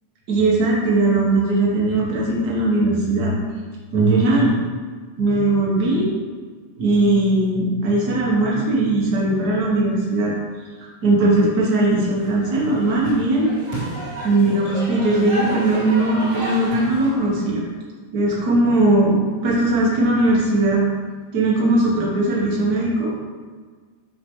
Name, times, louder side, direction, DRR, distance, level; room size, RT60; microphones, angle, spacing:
voice 1, 0.3-3.3 3.9-4.6 5.2-6.1 6.8-10.3 10.8-13.5 14.2-17.6 18.1-20.8 21.3-23.1, right 2 dB, 85° right, -4 dB, 0.8 m, -19 dB
sound 1, 12.2-17.3, right 1 dB, 35° right, 2.1 m, -31 dB
6.5 x 5.5 x 3.1 m, 1.5 s
omnidirectional pair, 3.6 m